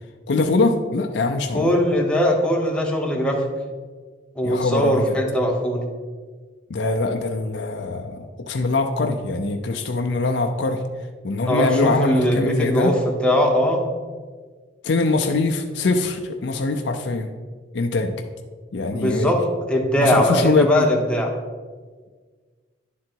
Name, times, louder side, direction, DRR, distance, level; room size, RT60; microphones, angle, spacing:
voice 1, 0.3-1.7 4.4-5.2 6.7-10.8 11.2-12.9 14.8-17.3 17.7-18.1 18.7-19.3 20.0-20.9, left 3 dB, 65° left, 4 dB, 0.5 m, -22 dB
voice 2, 1.5-3.5 4.4-5.8 11.4-13.9 18.9-21.3, equal, 5° left, 0 dB, 0.9 m, -20 dB
10.5 x 3.8 x 4.5 m, 1.5 s
head